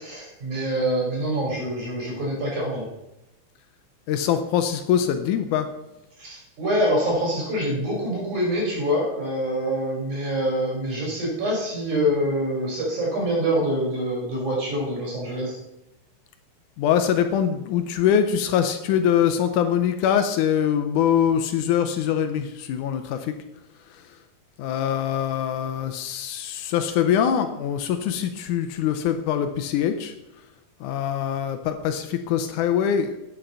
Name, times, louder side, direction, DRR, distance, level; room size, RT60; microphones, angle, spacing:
voice 1, 0.0-2.9 6.2-15.6, equal, 70° right, -3 dB, 5.5 m, -25 dB
voice 2, 4.1-5.7 16.8-23.4 23.9-24.2 24.6-30.1 30.8-33.2, left 9 dB, 80° left, 8 dB, 2.1 m, -23 dB
9.0 x 6.4 x 5.5 m, 0.89 s
omnidirectional pair, 3.6 m